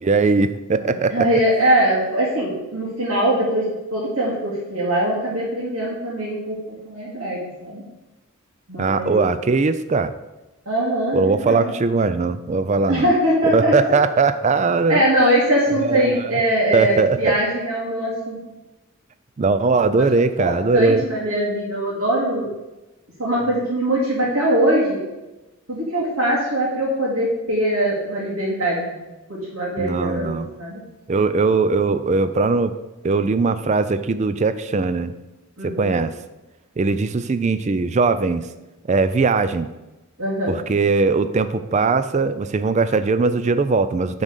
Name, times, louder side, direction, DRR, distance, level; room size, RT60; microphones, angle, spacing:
voice 1, 0.0-1.3 8.8-10.1 11.1-13.1 13.5-15.0 15.8-16.3 16.7-17.4 19.4-21.0 29.8-30.5 31.1-32.7 33.0-35.1 35.6-36.1 36.8-38.5 38.9-39.7 40.5-44.2, right 4 dB, 30° right, 12 dB, 0.3 m, -20 dB
voice 2, 0.8-6.6 6.8-7.8 8.7-9.2 10.7-11.7 12.9-13.9 14.9-18.4 20.4-22.5 23.2-25.0 25.7-29.0 29.3-30.8 35.6-35.9 40.2-40.6, right 1 dB, 70° right, -7 dB, 2.1 m, -22 dB
7.1 x 4.0 x 6.6 m, 1.0 s
head